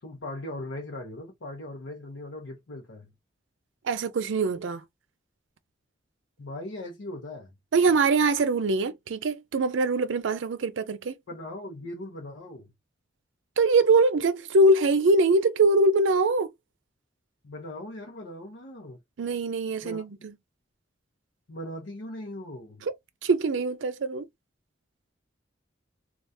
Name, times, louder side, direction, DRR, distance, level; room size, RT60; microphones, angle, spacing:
voice 1, 0.0-3.1 6.4-7.5 11.3-12.7 17.4-19.0 19.8-20.0 21.5-22.9, left 1 dB, 80° left, 0.7 m, -39 dB
voice 2, 3.8-4.8 7.7-11.2 13.6-16.5 19.2-20.3 22.8-22.9 23.2-24.3, right 2 dB, 80° right, 0.5 m, -23 dB
3.4 x 2.3 x 2.6 m
head